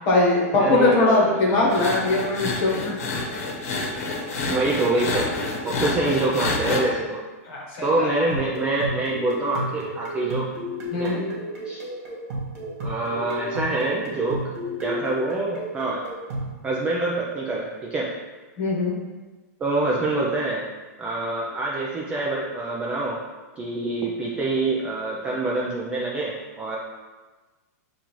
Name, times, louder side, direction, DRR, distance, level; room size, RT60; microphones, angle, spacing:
voice 1, 0.1-2.9 5.8-5.9 7.5-8.1 10.9-11.2 18.6-18.9, left 2 dB, 30° left, -3 dB, 1.1 m, -21 dB
voice 2, 0.6-1.9 4.5-5.3 5.6-7.2 7.8-10.5 10.9-11.1 11.7-11.8 12.8-14.4 14.8-16.0 16.6-18.1 19.6-20.7 21.0-23.2 23.6-26.8, right 2 dB, 10° right, -4 dB, 0.3 m, -26 dB
sound 1, 1.7-6.8, left 3 dB, 65° left, 0.9 m, -28 dB
sound 2, 8.1-16.6, right 1 dB, 60° right, 1.4 m, -32 dB
6.9 x 2.5 x 3.0 m, 1.2 s
supercardioid pair, 165°, 8 cm